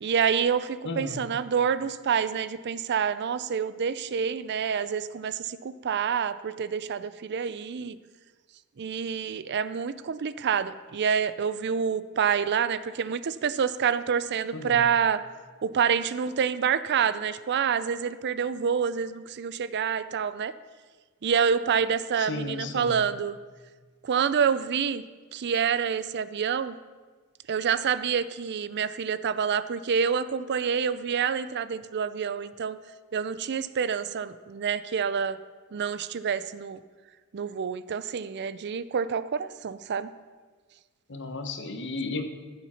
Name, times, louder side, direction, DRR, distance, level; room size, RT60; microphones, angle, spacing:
voice 1, 0.0-8.0 8.8-15.2 15.6-20.5 21.2-23.4 24.0-25.0 25.3-26.8 27.5-32.8 33.1-35.4 35.7-36.8 37.3-40.1, right 7 dB, 50° right, 15 dB, 0.4 m, -27 dB
voice 2, 0.8-1.3 14.5-14.9 22.2-23.0 41.1-42.2, left 3 dB, 55° left, 7 dB, 1.1 m, -34 dB
14.0 x 7.3 x 5.7 m, 1.4 s
head